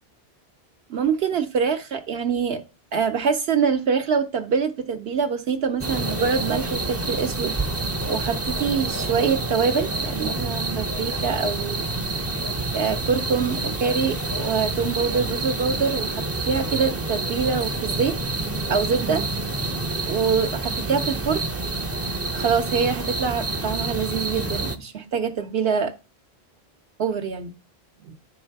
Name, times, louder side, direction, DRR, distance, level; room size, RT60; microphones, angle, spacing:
voice 1, 0.9-2.6 2.9-7.6 8.1-11.9 12.7-18.2 18.7-19.2 19.7-21.4 22.3-25.9 27.0-27.5 28.0-28.1, right 6 dB, 70° right, 6 dB, 0.9 m, -25 dB
sound 1, 5.8-24.8, right 2 dB, 20° right, 0.4 m, -28 dB
9.5 x 3.8 x 4.5 m, 0.30 s
omnidirectional pair, 1.1 m